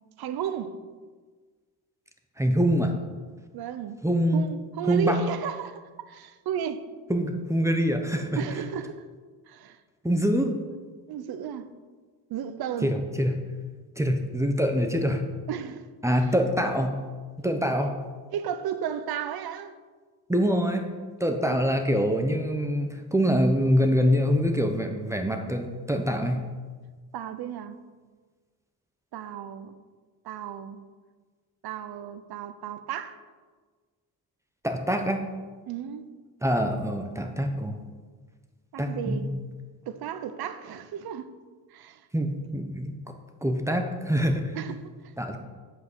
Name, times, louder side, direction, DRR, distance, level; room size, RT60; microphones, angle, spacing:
voice 1, 0.2-0.8 3.5-4.0 4.3-6.9 8.4-9.0 9.5-9.8 11.1-11.7 12.3-13.0 15.5-15.9 18.3-19.7 21.5-21.6 27.1-27.8 29.1-29.7 30.2-30.8 31.6-33.2 35.7-36.1 38.7-39.3 39.9-41.3 41.7-42.1 44.5-45.1, right 9 dB, 75° right, 0.9 m, -34 dB
voice 2, 2.4-2.9 4.0-4.4 4.9-5.2 7.1-8.4 10.0-10.5 12.8-13.3 14.0-15.2 16.0-17.0 17.4-17.9 20.3-20.8 21.2-26.4 34.6-35.2 36.4-37.8 38.8-39.2 42.1-42.9 43.4-44.6 45.2-45.4, equal, 10° right, 1.0 m, -25 dB
8.3 x 8.0 x 6.3 m
cardioid pair, 110°, 38 cm